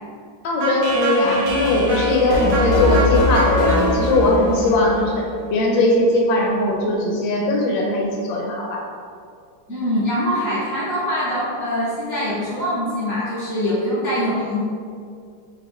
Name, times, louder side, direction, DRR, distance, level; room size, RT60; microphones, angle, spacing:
voice 1, 0.4-5.2 5.5-8.8, left 2 dB, 75° left, -1 dB, 1.3 m, -19 dB
sound 1, 0.6-5.6, left 1 dB, 55° right, 1.1 m, -21 dB
voice 2, 9.7-14.6, equal, 20° right, -11 dB, 0.5 m, -23 dB
4.0 x 3.1 x 2.9 m, 2.3 s
omnidirectional pair, 2.2 m